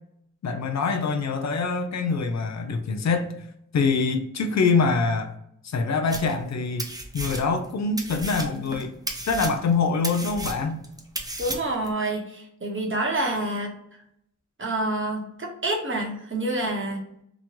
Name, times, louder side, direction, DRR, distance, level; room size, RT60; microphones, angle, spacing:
voice 1, 0.4-3.3 3.7-5.3 5.6-6.9 7.1-8.9 9.3-10.8, left 4 dB, 55° left, 0.4 m, -24 dB
sound 1, 6.1-6.5 6.8-7.7 8.0-11.9, right 1 dB, 10° right, 0.5 m, -34 dB
voice 2, 11.4-13.7 14.6-17.0, right 1 dB, 40° right, 0.9 m, -27 dB
3.0 x 2.2 x 2.8 m
cardioid pair, 55°, 33 cm